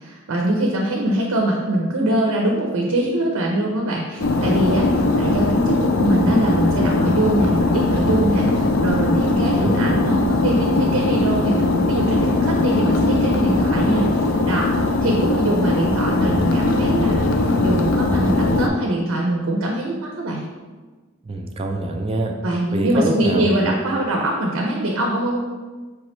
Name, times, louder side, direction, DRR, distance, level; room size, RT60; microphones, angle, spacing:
voice 1, 0.0-20.4 22.4-25.4, right 1 dB, 85° right, 0 dB, 0.5 m, -23 dB
sound 1, 4.2-18.7, left 2 dB, 65° left, 0.4 m, -20 dB
voice 2, 9.3-9.8 21.2-22.3 22.7-23.7, right 1 dB, 25° right, 2 dB, 0.3 m, -25 dB
4.6 x 3.0 x 3.1 m, 1.3 s
head